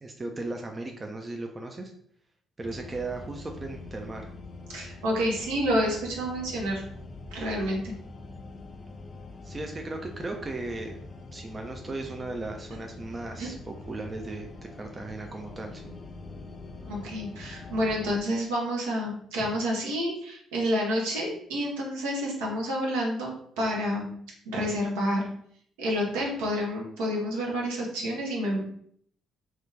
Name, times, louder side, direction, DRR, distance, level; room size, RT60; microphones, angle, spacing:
voice 1, 0.0-1.9 2.6-4.3 9.4-11.0 11.3-16.0, right 2 dB, 25° right, 3 dB, 0.4 m, -37 dB
sound 1, 2.6-18.2, left 3 dB, 35° left, 0.4 m, -44 dB
voice 2, 4.7-6.8 7.3-7.9 13.4-13.5 16.9-23.3 23.6-24.1 24.5-25.2 25.8-28.6, equal, 70° right, -2 dB, 0.8 m, -29 dB
3.0 x 2.3 x 3.2 m, 0.64 s
figure-of-eight pair, 45°, 0 cm